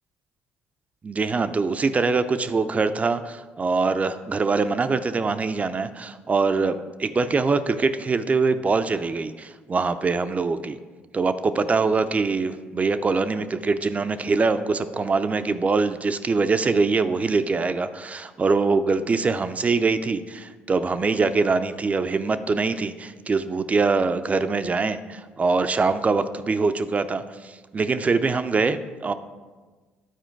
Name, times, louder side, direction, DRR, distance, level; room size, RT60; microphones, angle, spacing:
voice 1, 1.0-10.8 11.1-29.1, right 4 dB, 30° right, 11 dB, 0.5 m, -23 dB
9.1 x 4.4 x 4.5 m, 1.3 s
supercardioid pair, 65°, 5 cm